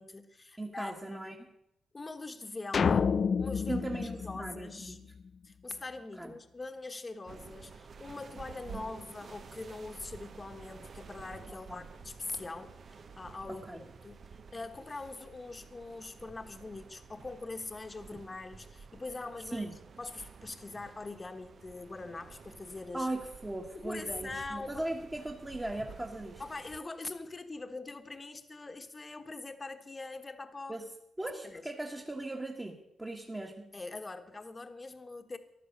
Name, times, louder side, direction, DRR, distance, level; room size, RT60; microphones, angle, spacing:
voice 1, 0.0-1.2 1.9-3.8 4.2-5.0 5.4-13.6 14.0-14.2 14.5-19.7 20.0-23.1 23.7-24.9 26.4-30.8 31.4-31.7 33.7-35.4, left 3 dB, 25° left, 8 dB, 1.3 m, -43 dB
voice 2, 0.6-1.4 3.7-5.0 6.2-6.3 11.5-11.8 13.5-13.8 18.1-18.2 19.5-19.7 22.9-26.4 30.7-30.8 31.2-33.6, right 1 dB, 15° right, 0 dB, 1.6 m, -38 dB
sound 1, 2.7-5.2, left 6 dB, 50° left, 0.5 m, -29 dB
sound 2, 7.3-26.8, right 5 dB, 50° right, 0.8 m, -51 dB
14.5 x 12.0 x 6.7 m, 0.81 s
cardioid pair, 115°, 0 cm